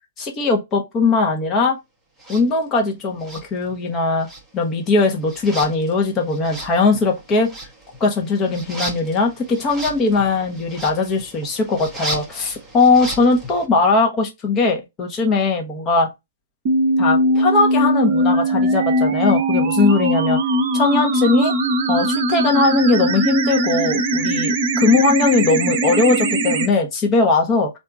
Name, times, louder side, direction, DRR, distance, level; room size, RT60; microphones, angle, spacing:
voice 1, 0.2-1.8 2.3-4.3 4.5-7.5 8.0-16.1 17.0-20.4 20.7-21.5 21.9-24.5 24.8-27.7, left 3 dB, 25° left, 1.1 m, -19 dB
sound 1, 2.2-2.4 3.2-13.7, right 1 dB, 5° right, 1.0 m, -35 dB
sound 2, 16.7-26.7, right 1 dB, 40° right, 0.8 m, -20 dB
3.5 x 2.7 x 3.5 m
figure-of-eight pair, 115°, 0 cm